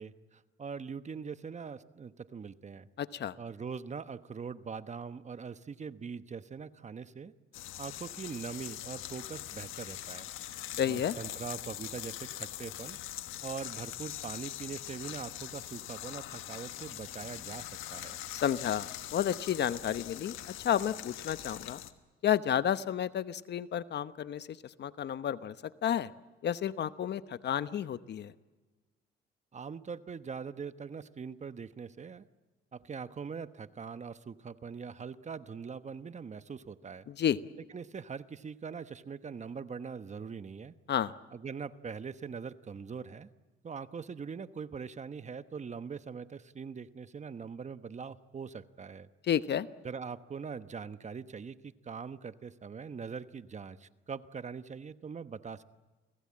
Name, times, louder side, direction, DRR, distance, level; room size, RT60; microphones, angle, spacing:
voice 1, 0.0-2.9 3.4-7.3 7.8-10.3 10.8-13.0 13.4-18.2 29.5-32.2 32.7-37.1 37.7-40.7 41.3-43.3 43.6-49.1 49.8-55.6, right 6 dB, 35° right, 12 dB, 1.1 m, -42 dB
voice 2, 3.0-3.3 10.8-11.2 18.4-20.4 20.6-21.8 22.2-25.5 25.8-26.1 26.4-28.3 37.1-37.4 40.9-41.1 49.3-49.7, left 9 dB, 60° left, 14 dB, 1.0 m, -31 dB
sound 1, 7.5-21.9, left 13 dB, 90° left, 1.4 m, -42 dB
29.5 x 19.0 x 8.7 m, 1.3 s
cardioid pair, 90°, 20 cm